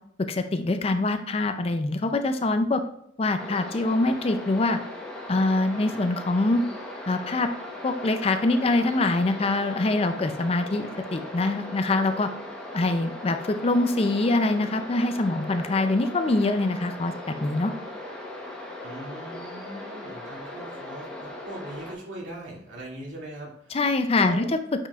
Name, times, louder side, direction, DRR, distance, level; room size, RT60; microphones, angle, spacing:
voice 1, 0.3-2.8 3.2-4.8 5.3-6.6 7.1-7.5 7.8-12.3 12.7-17.1 17.4-17.7 23.7-24.4, left 2 dB, 30° left, 8 dB, 0.4 m, -24 dB
sound 1, 3.4-21.9, left 1 dB, 5° left, 1.0 m, -39 dB
voice 2, 18.8-23.8 24.2-24.5, right 1 dB, 75° right, -4 dB, 2.4 m, -40 dB
8.7 x 4.7 x 2.4 m, 0.70 s
head